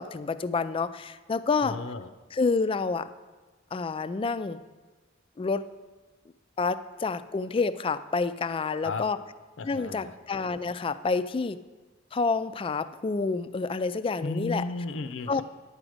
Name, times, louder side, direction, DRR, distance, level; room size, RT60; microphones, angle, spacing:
voice 1, 0.0-1.8 2.3-3.1 3.7-4.6 5.4-5.7 6.6-9.2 9.7-11.6 12.1-14.6 15.3-15.4, left 4 dB, 30° left, 13 dB, 0.3 m, -28 dB
voice 2, 1.6-2.1 8.8-9.0 9.6-10.2 14.2-15.4, left 3 dB, 85° left, 9 dB, 0.6 m, -34 dB
9.7 x 4.9 x 7.8 m, 1.3 s
head